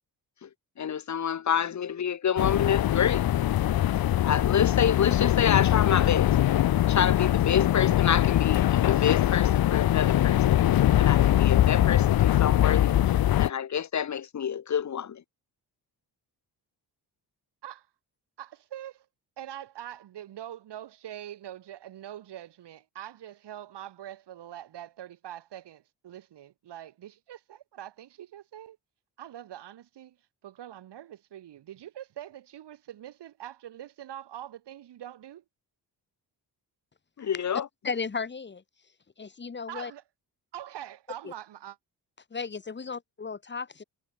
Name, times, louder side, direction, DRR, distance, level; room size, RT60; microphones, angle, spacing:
voice 1, 0.8-3.3 4.0-6.4 6.9-10.6 11.0-15.2 37.2-37.7, left 8 dB, 45° left, 1.5 m, -28 dB
sound 1, 2.4-13.5, left 12 dB, 60° left, 0.9 m, -22 dB
voice 2, 18.4-19.0 19.4-28.8 29.2-30.2 30.4-35.4 39.7-40.0 40.5-41.8, right 11 dB, 90° right, 6.2 m, -43 dB
voice 3, 37.8-38.6 39.2-39.9 41.2-41.3 42.3-43.8, left 5 dB, 25° left, 2.8 m, -35 dB
wide cardioid pair, 150°, 40 cm